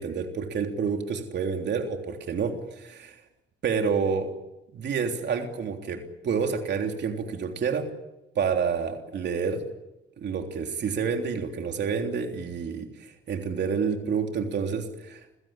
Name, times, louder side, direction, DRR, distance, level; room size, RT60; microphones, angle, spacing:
voice 1, 0.0-3.2 3.6-4.3 4.7-7.9 8.3-9.6 10.2-15.2, right 6 dB, 60° right, 4 dB, 3.4 m, -29 dB
29.5 x 16.5 x 9.0 m, 0.95 s
cardioid pair, 90°, 20 cm